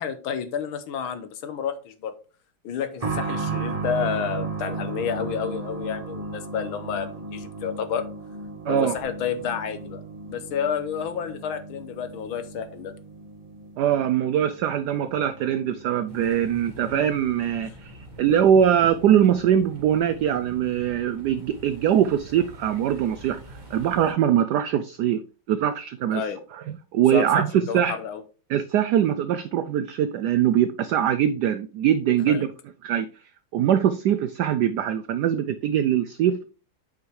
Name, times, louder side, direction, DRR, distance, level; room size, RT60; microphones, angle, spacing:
voice 1, 0.0-2.1 2.6-8.1 8.7-10.0 10.3-12.9 26.1-26.4 27.1-28.2 32.3-32.5, left 7 dB, 75° left, 1.7 m, -30 dB
sound 1, 3.0-17.4 17.7-17.8 18.8-18.9, right 4 dB, 50° right, 0.4 m, -35 dB
voice 2, 13.8-23.4 23.7-25.2 25.5-26.2 26.9-27.9 28.5-32.5 32.8-33.1 33.5-36.4, right 9 dB, 85° right, 0.9 m, -22 dB
sound 2, 16.1-24.1, right 1 dB, 25° right, 1.6 m, -44 dB
8.0 x 5.7 x 3.2 m
omnidirectional pair, 2.3 m